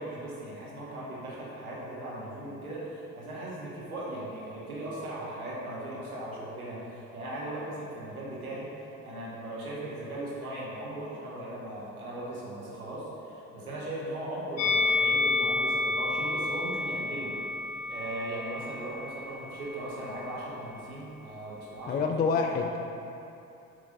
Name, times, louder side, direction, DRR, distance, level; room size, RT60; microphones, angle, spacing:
voice 1, 0.0-8.7 9.0-17.3 17.9-22.1 22.4-22.5, right 1 dB, 90° right, -6 dB, 1.2 m, -38 dB
Musical instrument, 14.6-19.8 20.1-20.3, left 3 dB, 75° left, 0.7 m, -30 dB
voice 2, 21.9-22.8, left 5 dB, 25° left, 4 dB, 0.4 m, -27 dB
7.5 x 3.3 x 4.9 m, 2.7 s
figure-of-eight pair, 50°, 42 cm